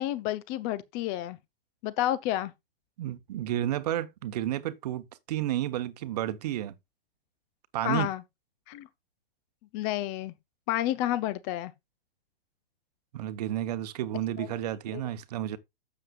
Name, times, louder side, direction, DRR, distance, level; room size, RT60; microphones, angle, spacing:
voice 1, 0.0-1.4 1.8-2.5 7.8-8.2 8.7-8.9 9.7-10.3 10.7-11.7 14.4-14.5 14.9-15.0, left 13 dB, 20° left, 0.5 m, -30 dB
voice 2, 3.0-6.7 7.7-8.1 13.1-15.6, right 12 dB, 45° right, 1.0 m, -31 dB
12.0 x 7.6 x 2.4 m
figure-of-eight pair, 110°, 30 cm